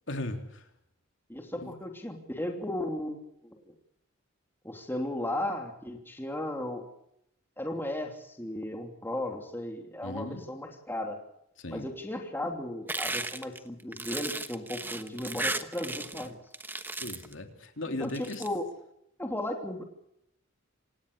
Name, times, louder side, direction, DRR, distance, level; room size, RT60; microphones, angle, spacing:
voice 1, 0.1-0.7 1.6-1.7 10.0-10.4 11.6-11.9 17.0-18.4, left 1 dB, 65° left, 5 dB, 3.3 m, -37 dB
voice 2, 1.3-3.7 4.6-6.8 7.6-11.2 11.7-16.4 17.9-18.7 19.2-19.8, left 1 dB, 10° left, 3 dB, 2.9 m, -35 dB
sound 1, 12.9-16.3 16.5-17.3 18.0-18.5, right 2 dB, 10° right, 1.1 m, -35 dB
28.0 x 17.0 x 6.7 m, 0.77 s
head